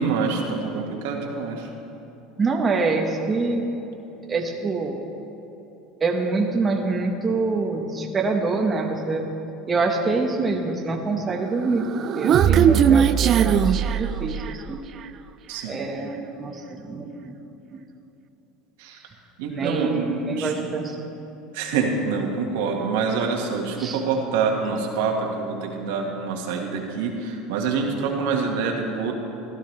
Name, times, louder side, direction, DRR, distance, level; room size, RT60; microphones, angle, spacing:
voice 1, 0.0-1.7 12.4-12.9 15.5-15.8 18.8-19.0 19.4-20.5 21.5-29.1, right 5 dB, 85° right, 1 dB, 1.6 m, -26 dB
voice 2, 2.4-3.6 4.3-5.0 6.0-9.2 9.7-11.9 12.1-14.8 15.7-17.4 17.7-17.8 19.5-20.9 23.8-24.0, right 3 dB, 20° right, 1 dB, 1.0 m, -25 dB
Human voice, 11.7-14.7, right 8 dB, 40° right, 0.3 m, -19 dB
15.5 x 12.0 x 3.3 m, 3.0 s
supercardioid pair, 125°, 0 cm